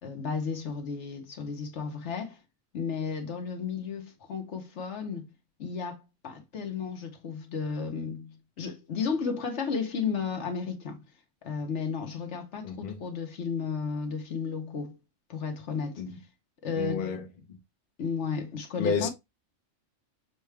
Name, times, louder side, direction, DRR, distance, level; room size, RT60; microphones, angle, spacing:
voice 1, 0.0-2.4 2.7-5.3 5.6-11.0 11.4-15.0 15.3-16.0 16.6-17.2 18.0-19.1, left 5 dB, 65° left, 1.1 m, -33 dB
voice 2, 12.6-13.1 16.0-16.2 16.8-17.6 18.8-19.1, left 5 dB, 45° left, 0.8 m, -31 dB
6.3 x 2.3 x 3.2 m
omnidirectional pair, 1.3 m